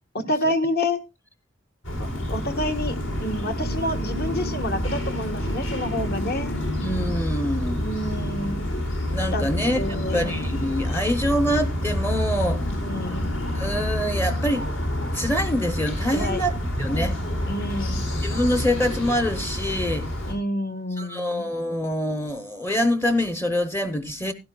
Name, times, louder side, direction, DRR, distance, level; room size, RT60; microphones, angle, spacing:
voice 1, 0.1-1.0 2.3-6.6 7.8-8.6 9.3-9.5 9.8-10.3 12.8-13.3 16.1-16.4 17.5-18.0 20.3-21.5, left 1 dB, 50° left, 1.4 m, -28 dB
sound 1, 1.8-20.3, left 1 dB, 70° left, 4.1 m, -28 dB
voice 2, 6.8-7.9 9.1-12.7 13.5-14.7 15.1-16.5 16.8-17.2 18.2-20.1 21.0-24.3, equal, 10° left, 0.8 m, -25 dB
16.0 x 12.0 x 2.3 m
head